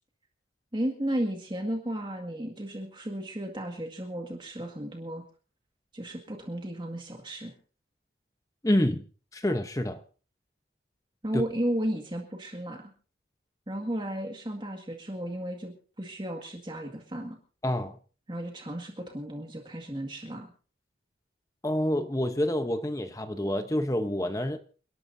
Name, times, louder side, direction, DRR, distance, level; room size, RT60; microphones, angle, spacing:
voice 1, 0.7-5.2 5.9-7.5 11.2-12.9 13.7-17.4 18.3-20.5, right 1 dB, 25° right, 3 dB, 1.9 m, -34 dB
voice 2, 8.6-9.0 9.3-10.0 11.3-11.4 17.6-18.0 21.6-24.6, left 1 dB, 20° left, 8 dB, 0.9 m, -27 dB
28.5 x 12.0 x 2.7 m, 0.38 s
head